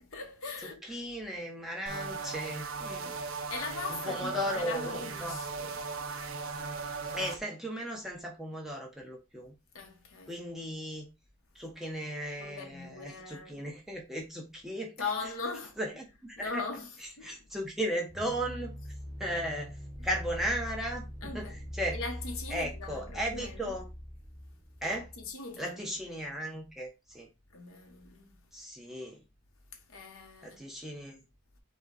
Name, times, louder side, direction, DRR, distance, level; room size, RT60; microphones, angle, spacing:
voice 1, 0.0-1.0 3.0-3.1 3.5-5.8 6.1-6.2 9.7-10.4 12.4-13.6 15.0-15.8 16.4-17.5 21.2-21.6 21.9-23.8 24.8-25.9 27.5-28.3 29.7-30.6, left 4 dB, 75° left, 1.1 m, -40 dB
voice 2, 0.8-3.1 4.0-5.4 7.1-9.5 10.3-11.1 11.5-14.9 15.8-16.6 17.2-18.7 19.2-19.8 20.0-21.0 21.3-22.0 22.5-23.9 24.8-25.1 25.6-27.3 28.5-29.2 30.4-31.2, equal, ahead, 0.9 m, -36 dB
sound 1, 1.9-7.4, right 4 dB, 70° right, 0.6 m, -38 dB
sound 2, 18.1-25.3, equal, 20° left, 1.0 m, -42 dB
5.0 x 2.3 x 4.0 m
head